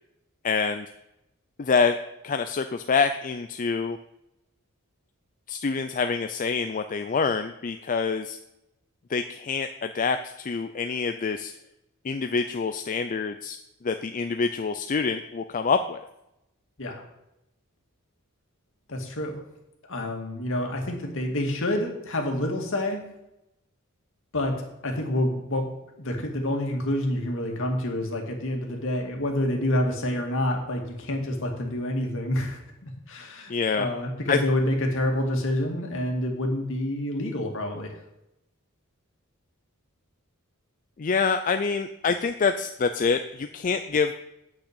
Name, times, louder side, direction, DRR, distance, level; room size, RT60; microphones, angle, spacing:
voice 1, 0.4-0.9 1.6-2.0 2.2-4.0 5.5-8.4 9.1-11.5 12.0-13.6 13.8-16.0 33.5-33.9 34.3-34.4 41.0-44.1, left 5 dB, 35° left, 8 dB, 0.4 m, -26 dB
voice 2, 18.9-19.3 19.9-23.0 24.3-24.5 24.8-25.7 26.0-37.9, left 1 dB, 60° left, 2 dB, 2.2 m, -28 dB
8.7 x 6.3 x 8.1 m, 0.88 s
head